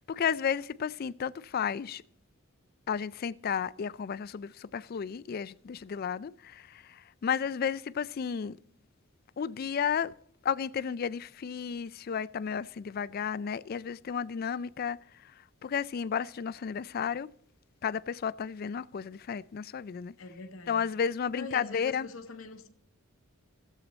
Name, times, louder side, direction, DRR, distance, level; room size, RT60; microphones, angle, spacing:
voice 1, 0.0-2.0 2.9-8.6 9.4-10.1 10.4-15.3 15.6-17.3 17.8-20.1 20.7-22.1, left 7 dB, 45° left, 0.3 m, -33 dB
voice 2, 20.2-20.9 21.3-22.7, left 3 dB, 70° left, 0.9 m, -43 dB
15.5 x 7.5 x 4.0 m
head